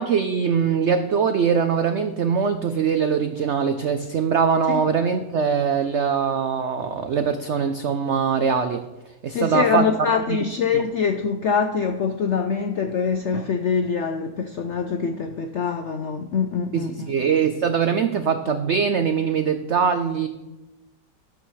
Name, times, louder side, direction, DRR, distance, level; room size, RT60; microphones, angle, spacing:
voice 1, 0.0-9.8 10.3-10.4 10.7-10.8 16.7-20.3, right 6 dB, 85° right, 8 dB, 0.6 m, -22 dB
voice 2, 9.3-17.1, left 6 dB, 75° left, 6 dB, 0.6 m, -24 dB
12.5 x 9.3 x 3.2 m, 1.0 s
omnidirectional pair, 1.9 m